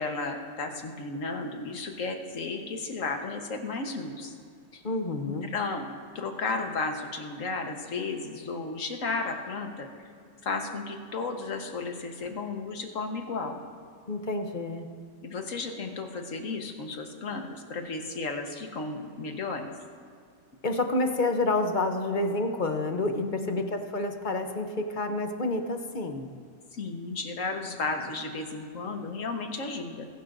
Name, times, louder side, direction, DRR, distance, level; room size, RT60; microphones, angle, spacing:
voice 1, 0.0-4.3 4.7-4.8 5.2-5.8 6.1-9.9 10.4-13.6 15.2-19.7 23.2-23.6 26.7-30.1, left 3 dB, 65° left, 4 dB, 1.6 m, -34 dB
voice 2, 4.8-5.5 14.1-14.9 20.6-26.3, left 2 dB, 40° left, 5 dB, 0.8 m, -29 dB
21.5 x 11.5 x 2.6 m, 2.3 s
omnidirectional pair, 1.5 m